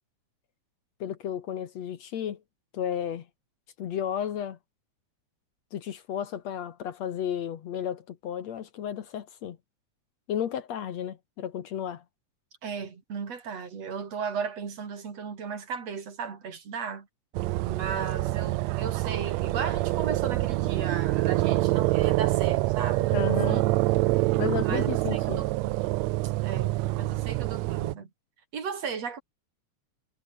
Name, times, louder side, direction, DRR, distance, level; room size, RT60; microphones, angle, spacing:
voice 1, 1.0-2.4 2.7-3.3 3.8-4.6 5.7-9.6 10.3-12.0 23.1-23.6 24.4-25.4, left 9 dB, 65° left, 2.5 m, -33 dB
voice 2, 12.6-17.1 17.7-23.9 24.6-25.7 26.4-28.1 28.5-29.2, right 6 dB, 55° right, 4.5 m, -35 dB
sound 1, 17.3-27.9, right 19 dB, 80° right, 1.6 m, -26 dB
omnidirectional pair, 3.5 m